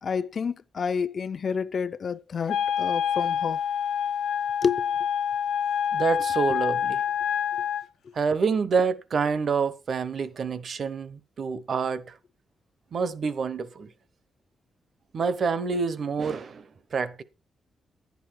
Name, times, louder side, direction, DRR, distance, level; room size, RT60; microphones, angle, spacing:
voice 1, 0.0-3.6 4.6-4.9, left 6 dB, 45° left, 0.5 m, -29 dB
Wind instrument woodwind instrument, 2.5-7.9, left 8 dB, 85° left, 0.7 m, -27 dB
voice 2, 5.9-7.0 8.1-12.2 12.9-13.9 15.1-17.2, right 5 dB, 45° right, 0.9 m, -27 dB
11.5 x 9.3 x 4.5 m
wide cardioid pair, 155°, 0 cm